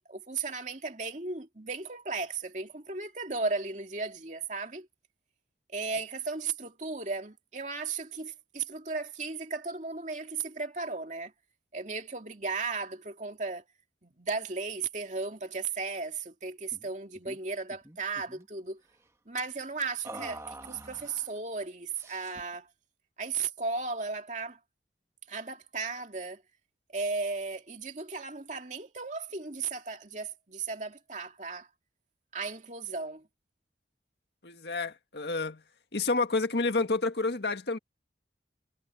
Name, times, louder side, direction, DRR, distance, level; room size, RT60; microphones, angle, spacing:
voice 1, 0.0-4.9 5.7-11.3 11.7-13.6 14.0-18.8 19.3-22.7 23.2-24.6 25.3-26.4 26.9-31.7 32.3-33.3, right 4 dB, 40° right, 2.6 m, -35 dB
sound 1, 16.7-16.9 17.1-17.4 17.7-18.5 20.0-21.3 21.9-22.5, right 1 dB, 15° right, 1.8 m, -45 dB
voice 2, 34.4-35.6 35.9-37.8, left 3 dB, 70° left, 1.8 m, -29 dB
head